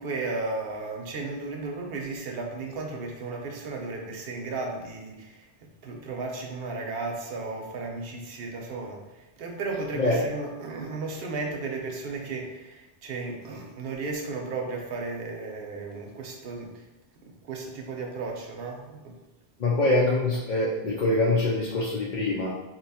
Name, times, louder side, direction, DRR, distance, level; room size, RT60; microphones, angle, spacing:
voice 1, 0.0-16.9 17.2-19.2, right 3 dB, 65° right, 1 dB, 0.8 m, -34 dB
voice 2, 19.6-22.5, left 2 dB, 55° left, -5 dB, 0.6 m, -24 dB
2.8 x 2.2 x 4.1 m, 1.1 s
omnidirectional pair, 1.1 m